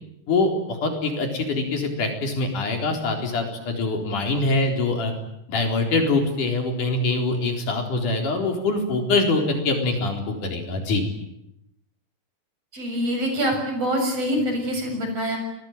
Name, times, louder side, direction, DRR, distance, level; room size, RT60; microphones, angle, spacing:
voice 1, 0.3-5.1 5.5-11.0, left 3 dB, 40° left, 3 dB, 5.0 m, -24 dB
voice 2, 12.7-15.4, equal, 30° right, 4 dB, 7.5 m, -25 dB
29.5 x 21.0 x 9.2 m, 0.84 s
omnidirectional pair, 5.8 m